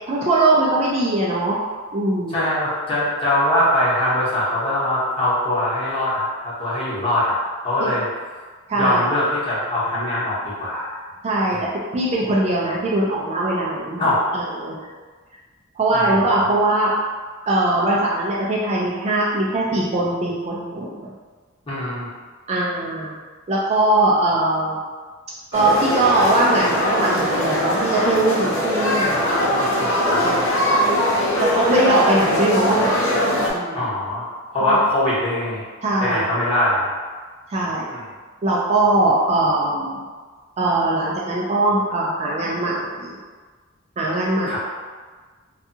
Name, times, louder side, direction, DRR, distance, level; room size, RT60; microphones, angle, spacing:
voice 1, 0.1-1.6 1.9-2.5 7.8-7.9 8.7-9.0 11.2-11.6 11.9-14.0 14.3-14.8 15.8-16.9 17.5-20.9 22.5-23.1 23.5-24.8 25.5-29.8 30.2-30.4 31.4-33.0 33.5-33.9 34.6-34.8 35.8-36.2 37.5-37.9 38.4-40.0 40.6-43.2 44.0-44.6, right 2 dB, 30° right, -5 dB, 0.3 m, -21 dB
voice 2, 2.3-7.4 7.6-8.1 8.7-10.9 11.5-11.6 14.0-14.2 15.9-16.2 21.7-22.1 30.1-30.2 33.7-34.3 34.5-35.6 36.0-36.9 37.9-38.0 44.5-44.6, left 1 dB, 25° left, -10 dB, 0.9 m, -22 dB
sound 1, 25.5-33.5, equal, 75° left, 0.6 m, -21 dB
2.6 x 2.3 x 2.6 m, 1.4 s
head